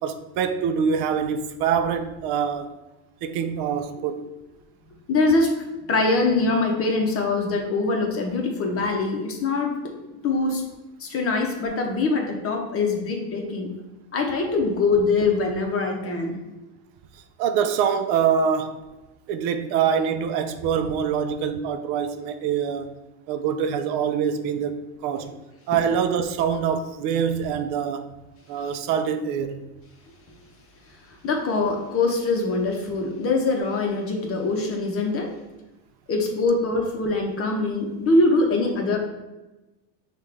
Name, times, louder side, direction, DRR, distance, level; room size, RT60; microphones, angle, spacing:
voice 1, 0.0-2.7 3.2-4.3 17.4-18.8 19.3-22.9 23.3-25.3 25.7-28.1 28.5-29.7, right 7 dB, 60° right, 0.5 m, -25 dB
voice 2, 5.1-9.8 10.2-10.6 11.0-13.8 14.1-16.4 31.1-35.3 36.1-39.0, left 3 dB, 30° left, 0.9 m, -23 dB
5.4 x 2.5 x 3.3 m
supercardioid pair, 115°, 44 cm